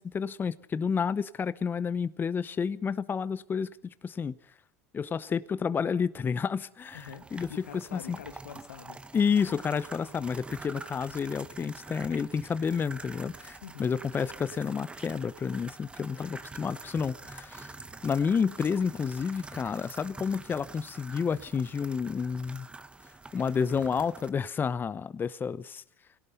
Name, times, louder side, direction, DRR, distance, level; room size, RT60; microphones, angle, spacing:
voice 1, 0.0-4.4 4.9-7.5 7.9-8.2 9.1-17.7 18.0-22.7 23.3-25.8, left 6 dB, 25° left, 16 dB, 0.8 m, -30 dB
sound 1, 6.8-24.3, right 3 dB, 15° right, 1.4 m, -46 dB
voice 2, 6.9-9.0 13.6-14.0, left 9 dB, 90° left, 11 dB, 1.6 m, -45 dB
25.0 x 17.5 x 6.7 m, 0.70 s
hypercardioid pair, 85°, 8 cm